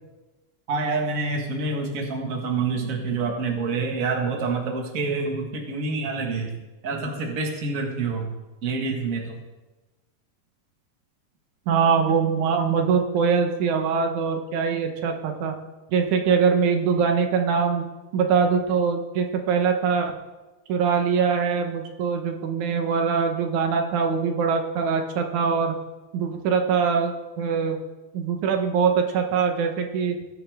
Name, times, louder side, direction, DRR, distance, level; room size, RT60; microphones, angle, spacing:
voice 1, 0.7-6.6 6.8-8.3 8.6-9.4, right 4 dB, 35° right, 1 dB, 1.6 m, -27 dB
voice 2, 11.7-15.6 15.9-17.9 18.1-20.1 20.7-25.7 26.1-27.8 28.1-30.2, right 6 dB, 85° right, 5 dB, 2.5 m, -23 dB
19.5 x 7.1 x 3.5 m, 1.1 s
omnidirectional pair, 3.3 m